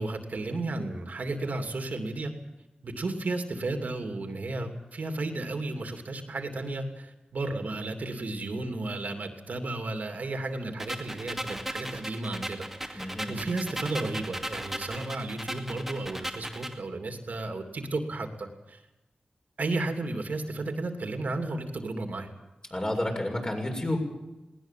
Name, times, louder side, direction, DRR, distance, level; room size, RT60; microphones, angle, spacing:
voice 1, 0.0-2.3 2.8-18.8 19.6-22.3, right 2 dB, 70° right, 5 dB, 2.8 m, -33 dB
sound 1, 10.8-16.8, right 1 dB, 10° right, 2.4 m, -37 dB
voice 2, 12.9-13.4 22.7-24.0, left 1 dB, 30° left, 1 dB, 7.2 m, -30 dB
20.0 x 18.5 x 7.6 m, 1.0 s
wide cardioid pair, 65°, 3 cm